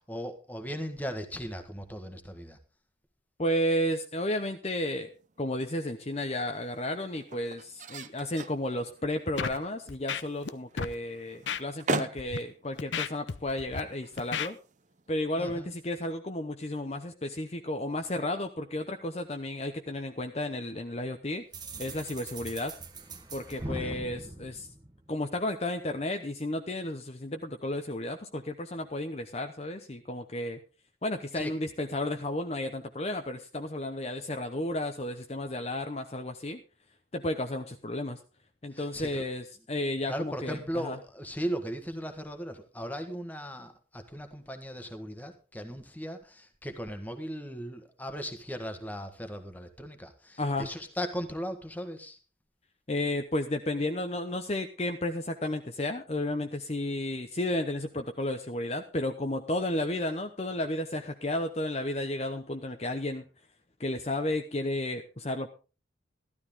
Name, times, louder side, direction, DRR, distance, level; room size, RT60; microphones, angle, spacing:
voice 1, 0.0-2.6 15.4-15.7 23.2-23.3 23.6-24.0 31.3-31.5 38.7-39.2 40.1-52.2, equal, 10° left, 6 dB, 1.5 m, -37 dB
voice 2, 3.4-5.1 5.4-14.6 15.1-21.4 21.8-22.7 23.3-24.7 25.1-30.6 31.0-36.6 37.1-38.2 38.6-41.0 50.4-50.7 52.9-63.2 63.8-65.5, left 1 dB, 35° left, 5 dB, 0.8 m, -32 dB
sound 1, 5.0-15.3, right 3 dB, 40° right, 0.7 m, -41 dB
Scratching (performance technique), 9.4-9.6 9.9-10.5 10.8-10.9 11.5-11.6 12.2-12.4 12.8-13.8 14.2-14.5, left 6 dB, 75° left, 0.7 m, -33 dB
sound 2, 21.5-25.4, right 2 dB, 20° right, 1.1 m, -41 dB
14.0 x 12.5 x 3.7 m, 0.34 s
head